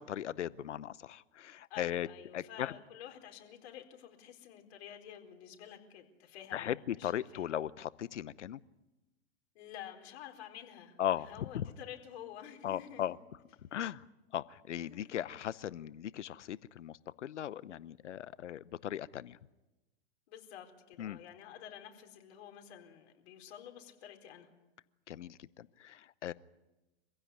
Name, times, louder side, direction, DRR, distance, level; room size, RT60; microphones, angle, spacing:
voice 1, 0.0-2.1 2.3-2.7 6.5-8.6 11.0-11.7 12.6-13.2 13.7-14.0 14.3-19.4 21.0-21.2 25.1-26.3, left 11 dB, 90° left, 19 dB, 0.9 m, -38 dB
voice 2, 1.7-7.5 9.5-13.1 14.9-15.2 20.3-24.5, left 10 dB, 60° left, 5 dB, 4.3 m, -50 dB
25.5 x 16.0 x 9.6 m, 1.0 s
hypercardioid pair, 120°, 35 cm